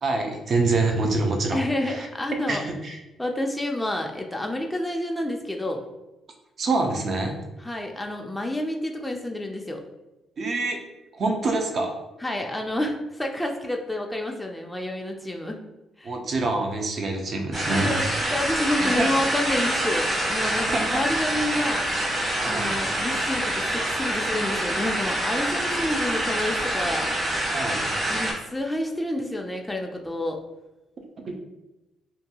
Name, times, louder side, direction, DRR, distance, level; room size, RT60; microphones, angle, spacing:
voice 1, 0.0-2.1 2.5-3.0 6.6-7.4 10.4-10.8 11.1-11.9 16.0-17.9 18.8-19.1 20.7-21.1 22.4-22.7 27.5-27.9 31.2-31.4, right 3 dB, 50° right, 3 dB, 0.5 m, -26 dB
voice 2, 1.5-2.6 3.2-5.8 7.6-9.8 12.2-15.6 16.0-16.1 17.7-21.9 22.4-27.1 28.1-30.4, left 1 dB, 5° left, 1 dB, 0.4 m, -29 dB
sound 1, 17.5-28.3, right 1 dB, 35° right, 1.1 m, -26 dB
2.6 x 2.3 x 2.8 m, 1.0 s
cardioid pair, 90°, 0 cm